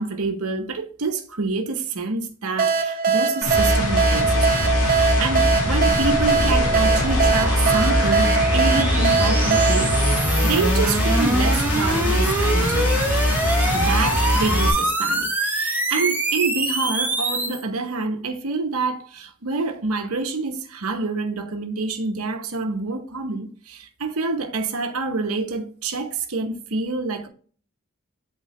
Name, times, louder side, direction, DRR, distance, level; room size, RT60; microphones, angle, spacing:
voice 1, 0.0-10.0 10.4-12.9 13.6-27.3, right 3 dB, 75° right, 0.9 m, -27 dB
sound 1, 2.6-11.0, right 5 dB, 40° right, 0.7 m, -22 dB
sound 2, 3.4-14.7, left 1 dB, 90° left, 1.7 m, -22 dB
sound 3, 4.2-17.6, right 1 dB, 10° right, 1.1 m, -26 dB
8.4 x 4.0 x 3.1 m
head